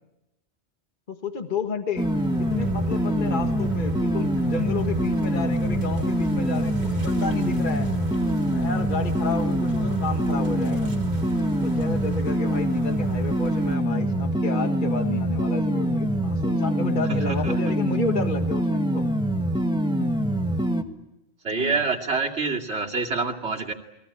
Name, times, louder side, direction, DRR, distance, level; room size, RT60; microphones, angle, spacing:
voice 1, 1.1-2.1 2.4-7.9 8.5-10.9 11.6-19.1 20.0-20.1 21.5-21.9, left 4 dB, 45° left, 6 dB, 1.7 m, -31 dB
sound 1, 2.0-20.8, right 1 dB, 5° right, 1.6 m, -24 dB
sound 2, 2.0-13.8, right 1 dB, 40° right, 2.3 m, -37 dB
voice 2, 17.1-17.5 21.4-23.7, right 4 dB, 65° right, 1 dB, 2.8 m, -27 dB
29.5 x 22.0 x 8.8 m, 0.91 s
omnidirectional pair, 1.2 m